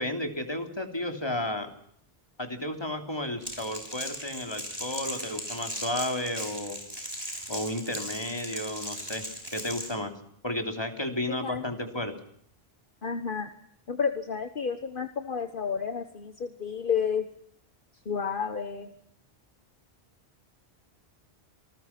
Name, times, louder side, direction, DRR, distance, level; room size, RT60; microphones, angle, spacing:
voice 1, 0.0-1.7 2.4-6.8 7.5-9.2 9.5-10.1 10.4-12.1, left 1 dB, 25° left, 5 dB, 3.4 m, -32 dB
Crackle, 3.4-9.9, equal, 20° right, 6.7 m, -38 dB
voice 2, 11.3-11.6 13.0-13.5 13.9-17.3 18.0-18.9, left 6 dB, 55° left, 9 dB, 1.4 m, -31 dB
27.5 x 20.0 x 6.0 m, 0.68 s
omnidirectional pair, 1.1 m